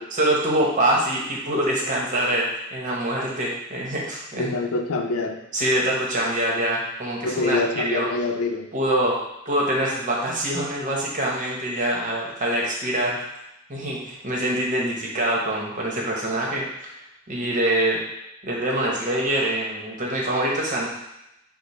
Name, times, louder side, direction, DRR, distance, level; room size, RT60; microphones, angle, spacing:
voice 1, 0.1-4.5 5.5-8.1 8.7-9.2 9.4-13.2 13.7-16.9 17.3-18.0 18.4-20.9, right 1 dB, 40° right, -3 dB, 1.0 m, -24 dB
voice 2, 4.4-5.4 7.2-8.7, left 3 dB, 85° left, 4 dB, 0.5 m, -25 dB
5.0 x 2.1 x 4.2 m, 0.88 s
head